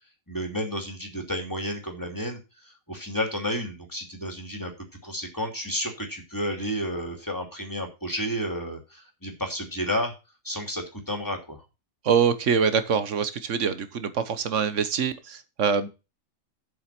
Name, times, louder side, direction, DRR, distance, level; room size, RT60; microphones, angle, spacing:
voice 1, 0.3-4.7 5.0-10.1 10.4-11.6, equal, 15° left, 3 dB, 2.8 m, -31 dB
voice 2, 12.0-15.9, right 6 dB, 60° right, 12 dB, 1.4 m, -24 dB
7.9 x 6.9 x 6.0 m, 0.28 s
omnidirectional pair, 1.4 m